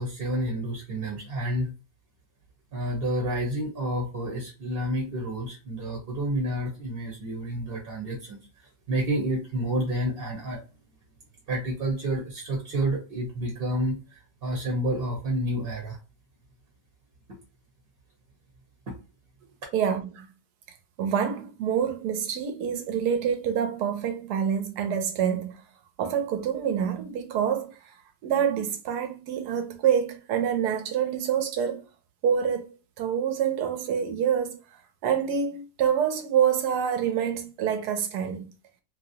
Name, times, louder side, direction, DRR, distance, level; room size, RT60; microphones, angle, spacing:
voice 1, 0.0-1.7 2.7-8.4 8.9-10.6 11.5-16.0, right 1 dB, 40° right, 0.8 m, -29 dB
voice 2, 19.7-20.3 21.0-25.6 26.0-27.8 28.2-31.8 32.2-32.7 33.0-34.6 35.0-38.5, right 8 dB, 70° right, 1.1 m, -26 dB
3.0 x 2.6 x 2.7 m
omnidirectional pair, 2.0 m